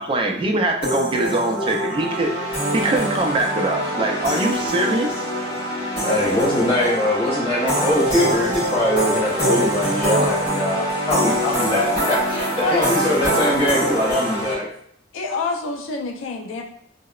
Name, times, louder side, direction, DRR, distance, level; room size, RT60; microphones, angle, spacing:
voice 1, 0.0-2.3 2.7-5.3, right 2 dB, 25° right, 1 dB, 0.3 m, -22 dB
sound 1, 0.8-14.5, right 1 dB, 45° left, 1.3 m, -23 dB
voice 2, 6.0-14.7, left 1 dB, 30° left, -11 dB, 0.9 m, -22 dB
voice 3, 15.1-16.6, left 3 dB, 85° left, 3 dB, 0.4 m, -26 dB
2.7 x 2.0 x 2.3 m, 0.66 s
head